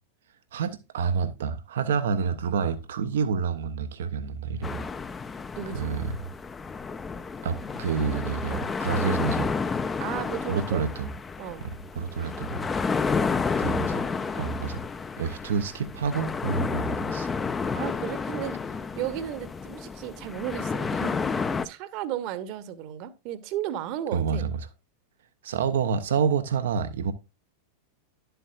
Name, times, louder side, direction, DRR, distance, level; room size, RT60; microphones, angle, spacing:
voice 1, 0.5-4.8 5.7-6.3 7.4-9.5 10.5-11.1 11.6-12.6 13.6-14.0 14.4-14.8 15.2-17.3 24.1-24.6 25.4-27.1, right 6 dB, 60° right, 0.6 m, -28 dB
sound 1, 4.6-21.7, left 5 dB, 15° left, 0.6 m, -31 dB
voice 2, 5.6-5.9 8.5-8.8 10.0-10.8 11.4-11.6 17.7-18.6 19.0-24.5, right 11 dB, 40° right, 1.0 m, -34 dB
11.0 x 7.9 x 2.5 m
figure-of-eight pair, 90°, 0 cm